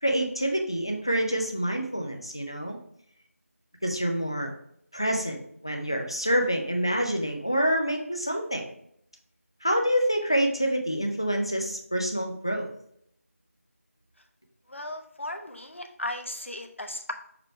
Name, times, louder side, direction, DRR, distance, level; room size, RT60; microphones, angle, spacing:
voice 1, 0.0-2.8 3.8-4.5 4.9-8.7 9.6-12.7, equal, 20° left, 3 dB, 0.5 m, -27 dB
voice 2, 14.7-17.1, left 1 dB, 50° left, 5 dB, 0.9 m, -36 dB
6.7 x 3.1 x 4.5 m, 0.68 s
figure-of-eight pair, 175°, 8 cm